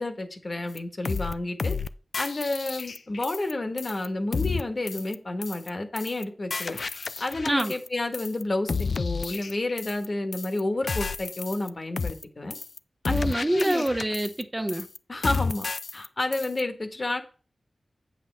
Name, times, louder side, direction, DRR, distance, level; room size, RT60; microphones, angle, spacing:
voice 1, 0.0-1.7 2.2-6.8 7.2-12.5 13.0-13.2 13.4-13.8 15.1-15.7 15.9-17.2, left 2 dB, 45° left, 1.3 m, -30 dB
sound 1, 0.8-0.9 1.0-1.3 1.6-1.9 2.1-3.5 3.8-4.1 4.3-4.6 4.9-5.1 5.4-5.7 6.0-6.2 6.5-7.9 8.1-8.4 8.7-10.1 10.3-10.6 10.9-11.7 12.0-12.2 12.5-12.8 13.0-14.4 14.7-15.0 15.2-16.1 16.3-16.6, left 4 dB, 70° left, 0.4 m, -31 dB
voice 2, 13.1-14.9, right 1 dB, 20° right, 0.6 m, -26 dB
8.1 x 7.6 x 3.3 m
wide cardioid pair, 65°, 0 cm